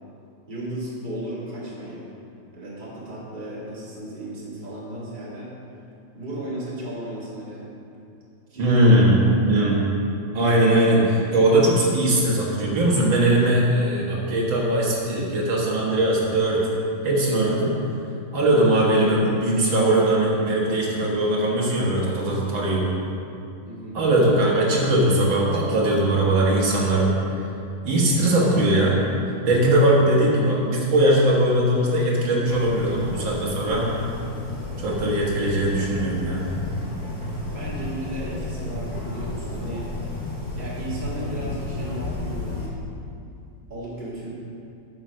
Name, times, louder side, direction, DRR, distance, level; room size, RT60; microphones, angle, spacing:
voice 1, 0.5-2.0 2.5-5.5 6.1-7.6 8.5-9.2 23.7-24.0 28.0-28.3 37.5-40.1 40.5-42.7 43.7-44.3, right 1 dB, 25° right, -7 dB, 2.1 m, -35 dB
voice 2, 8.6-9.2 9.4-9.8 10.3-16.7 17.0-17.7 18.3-22.8 23.9-27.1 27.8-29.0 29.5-33.8 34.8-36.4, right 1 dB, 85° right, -4 dB, 2.3 m, -20 dB
sound 1, 32.5-42.7, left 2 dB, 5° left, 1.6 m, -32 dB
8.9 x 6.1 x 6.3 m, 2.6 s
omnidirectional pair, 2.1 m